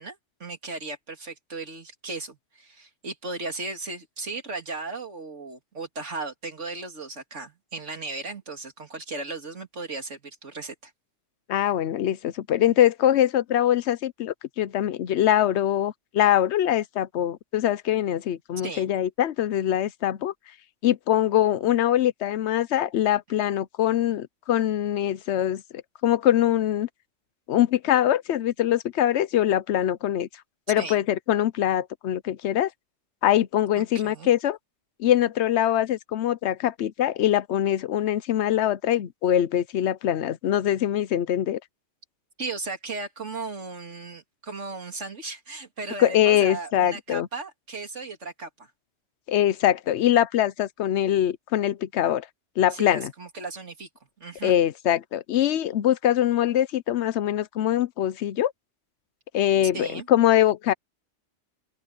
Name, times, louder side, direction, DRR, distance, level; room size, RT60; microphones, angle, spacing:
voice 1, 0.0-10.9 18.6-18.9 30.7-31.0 33.8-34.3 42.4-48.7 52.7-53.9 54.2-54.5 59.7-60.1, right 3 dB, 75° right, 3.1 m, -36 dB
voice 2, 11.5-20.3 20.8-25.6 26.0-26.9 27.5-30.3 30.7-32.7 33.2-34.6 35.0-41.6 46.0-47.3 49.3-52.3 52.6-53.1 54.4-58.5 59.3-60.7, left 11 dB, 70° left, 0.9 m, -23 dB
open air
omnidirectional pair, 1.2 m